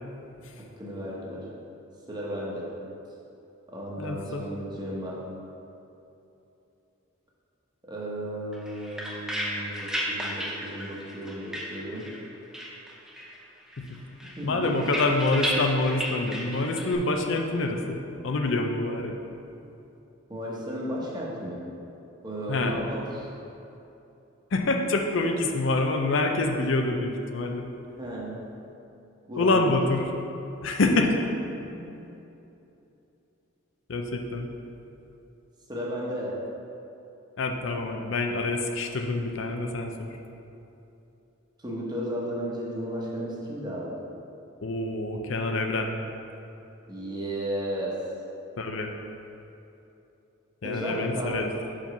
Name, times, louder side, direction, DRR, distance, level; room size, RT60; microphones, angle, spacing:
voice 1, 0.6-1.5 2.1-2.7 3.7-5.2 7.8-12.1 14.4-14.9 20.3-21.6 22.2-23.3 28.0-28.4 29.2-29.8 31.7-31.9 35.7-36.4 41.6-44.0 46.9-48.0 50.6-51.8, equal, 20° right, -4 dB, 1.1 m, -34 dB
voice 2, 4.0-4.5 13.8-19.2 22.5-22.8 24.5-27.7 29.4-30.1 30.6-31.2 33.9-34.5 37.4-40.1 44.6-45.9 48.6-48.9 50.6-51.5, left 2 dB, 65° left, 3 dB, 0.5 m, -26 dB
sound 1, 8.5-12.3 12.5-13.4 13.7-16.9, equal, 5° right, 0.7 m, -34 dB
5.3 x 4.9 x 5.9 m, 2.9 s
head